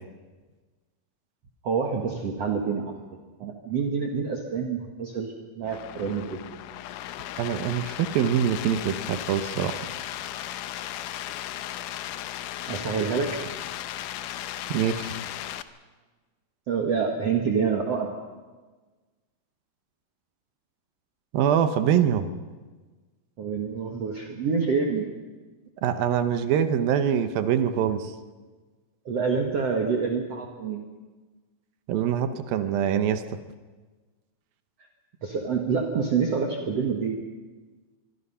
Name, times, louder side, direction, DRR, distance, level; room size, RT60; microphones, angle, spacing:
voice 1, 1.6-2.9 3.4-6.4 12.7-13.4 16.7-18.2 23.4-25.1 29.1-30.8 34.8-34.9 35.2-37.2, right 5 dB, 50° right, 2 dB, 2.2 m, -27 dB
sound 1, 5.6-15.6, left 12 dB, 75° left, 2.0 m, -36 dB
voice 2, 7.4-9.8 14.7-15.1 21.3-22.3 25.8-28.1 31.9-33.2, right 9 dB, 70° right, 10 dB, 2.7 m, -24 dB
25.5 x 23.5 x 5.7 m, 1.3 s
omnidirectional pair, 4.5 m